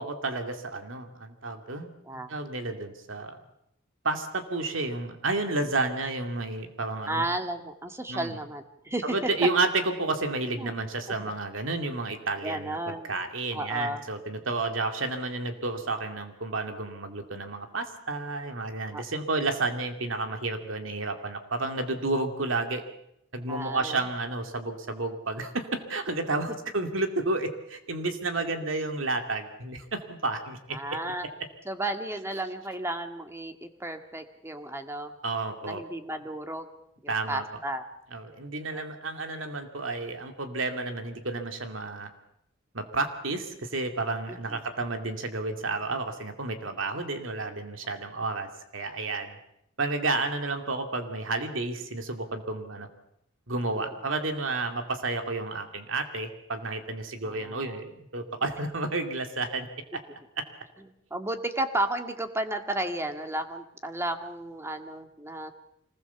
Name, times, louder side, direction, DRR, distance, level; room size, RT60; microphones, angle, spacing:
voice 1, 0.0-3.4 4.0-7.2 8.1-8.4 9.0-22.8 23.3-31.0 35.2-35.8 37.1-37.4 38.1-42.1 42.7-49.4 49.8-52.9 53.5-59.7 59.9-60.0 60.4-60.5, right 3 dB, 70° right, 6 dB, 2.6 m, -31 dB
voice 2, 7.1-9.2 10.6-10.7 12.4-13.1 13.5-14.0 18.9-19.0 23.5-24.1 30.7-31.3 31.7-35.2 35.6-36.7 37.0-37.8 44.5-44.6 53.8-53.9 57.2-57.8 61.1-65.5, right 1 dB, 15° right, 6 dB, 1.8 m, -33 dB
25.5 x 20.0 x 7.1 m, 0.77 s
head